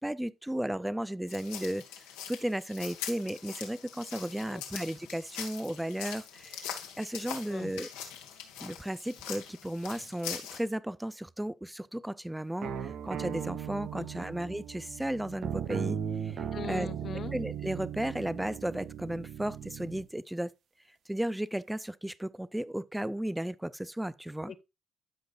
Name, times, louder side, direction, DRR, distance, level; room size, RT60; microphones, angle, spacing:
voice 1, 0.0-1.8 2.3-6.7 7.0-7.9 8.6-16.0 16.2-16.4 16.7-16.9 17.3-20.5 21.1-24.5, right 1 dB, 5° right, 0.5 m, -34 dB
sound 1, 1.3-10.6, left 9 dB, 90° left, 1.7 m, -43 dB
voice 2, 4.5-4.8 7.5-7.7 13.9-14.1 16.5-17.3 24.5-24.6, left 7 dB, 55° left, 0.8 m, -41 dB
sound 2, 12.6-20.1, right 8 dB, 60° right, 0.9 m, -37 dB
13.0 x 5.2 x 2.5 m
hypercardioid pair, 55°, 0 cm